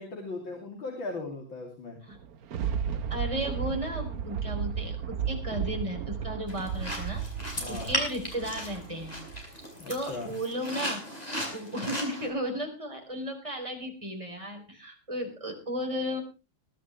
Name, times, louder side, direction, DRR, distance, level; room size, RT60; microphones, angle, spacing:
voice 1, 0.0-2.0 7.6-7.9 9.8-10.3, left 3 dB, 80° left, 0 dB, 3.6 m, -38 dB
Thunder, 2.1-9.6 10.1-10.2, right 7 dB, 60° right, 1.2 m, -34 dB
voice 2, 3.1-7.2 7.7-9.2 9.9-11.0 11.5-16.2, equal, 15° right, 2 dB, 4.0 m, -34 dB
sound 1, 6.5-12.3, equal, 20° left, 4.6 m, -36 dB
21.0 x 11.5 x 3.2 m, 0.30 s
omnidirectional pair, 2.1 m